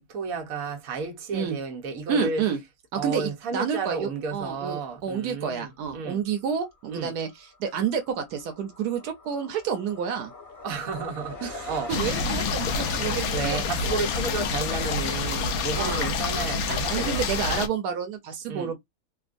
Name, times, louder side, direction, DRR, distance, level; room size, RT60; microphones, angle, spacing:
voice 1, 0.0-2.4 2.9-6.2 6.9-7.1 10.6-11.9 13.3-17.6 18.5-18.7, right 4 dB, 70° right, 1.3 m, -32 dB
voice 2, 2.1-2.6 2.9-10.3 11.4-13.7 15.7-16.1 16.9-18.8, right 7 dB, 85° right, 1.2 m, -29 dB
sound 1, 6.5-6.7 7.0-13.3, left 3 dB, 40° left, 1.0 m, -43 dB
sound 2, 11.9-17.7, left 5 dB, 75° left, 1.0 m, -27 dB
3.5 x 2.2 x 2.5 m
omnidirectional pair, 1.6 m